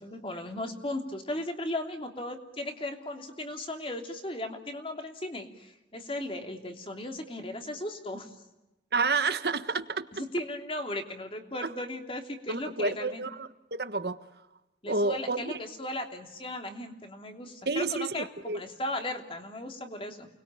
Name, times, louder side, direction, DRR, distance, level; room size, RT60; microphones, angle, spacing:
voice 1, 0.0-8.4 10.2-13.2 14.8-20.3, left 1 dB, 30° left, 4 dB, 3.1 m, -36 dB
voice 2, 8.9-10.2 12.5-14.2 14.9-15.6 17.6-18.6, right 3 dB, 60° right, 11 dB, 1.4 m, -30 dB
29.5 x 21.5 x 9.1 m, 0.98 s
head